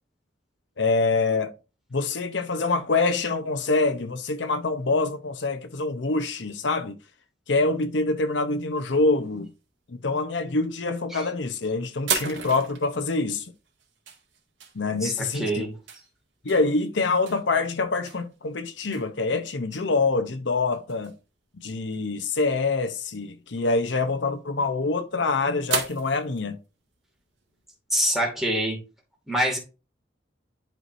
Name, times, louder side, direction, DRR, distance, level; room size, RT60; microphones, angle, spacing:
voice 1, 0.8-1.5 1.9-7.0 7.5-9.5 9.9-13.5 14.7-15.7 16.4-21.1 21.6-26.6, left 3 dB, 70° left, 0.8 m, -25 dB
sound 1, 8.9-9.6 10.4-10.9 11.3-11.5 12.1-20.2 20.7-21.2 21.6-21.7 21.9-22.0 22.2-22.6 22.9-23.0 23.9-25.1 25.6-27.8, right 6 dB, 85° right, 2.1 m, -35 dB
voice 2, 15.0-15.8 27.9-28.8 29.3-29.6, right 1 dB, ahead, 2.2 m, -25 dB
11.0 x 4.6 x 2.7 m
head